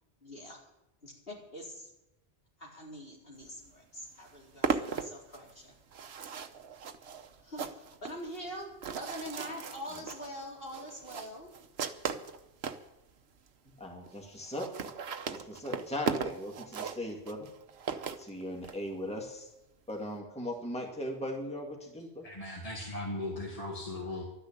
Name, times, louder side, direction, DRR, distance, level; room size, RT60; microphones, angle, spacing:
voice 1, 0.2-0.6 1.0-1.9 2.6-5.8 7.4-11.5, equal, 60° left, -3 dB, 4.5 m, -44 dB
sound 1, 3.7-3.8 4.0-12.9 13.5-13.6 13.8-13.9 14.1-14.2 14.4-18.8, right 6 dB, 70° right, 1.2 m, -37 dB
voice 2, 13.8-14.9 15.3-17.5 18.2-19.5 19.9-22.2, left 1 dB, 5° left, 1 dB, 2.1 m, -38 dB
voice 3, 22.2-24.2, left 2 dB, 35° left, -2 dB, 2.3 m, -38 dB
12.5 x 10.0 x 8.8 m, 0.92 s
omnidirectional pair, 1.1 m